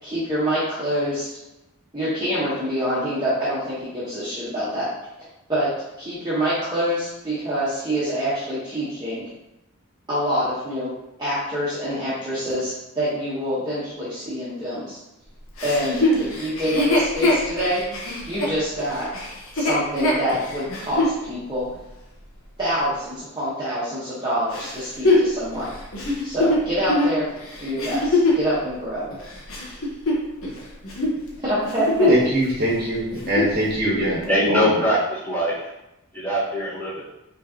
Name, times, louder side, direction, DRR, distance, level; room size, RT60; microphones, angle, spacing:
voice 1, 0.0-1.3 1.9-4.9 5.5-5.7 6.0-9.2 10.1-10.9 11.2-15.0 15.6-17.8 18.2-19.1 19.5-21.6 22.6-25.7 26.2-27.2 27.6-29.1 31.4-32.1, equal, 20° right, -12 dB, 1.1 m, -26 dB
Chuckle chortle, 15.6-21.2 21.7-21.8 24.5-28.5 29.1-30.6 30.8-31.2 31.6-32.3 32.6-32.7 33.1-33.6 34.2-34.3, left 2 dB, 70° left, 1.0 m, -22 dB
voice 2, 32.1-34.2 34.5-34.8, right 1 dB, 45° right, -5 dB, 1.2 m, -22 dB
voice 3, 34.3-35.7 36.1-37.0, equal, 5° left, -10 dB, 1.4 m, -22 dB
5.2 x 3.2 x 2.8 m, 0.91 s
head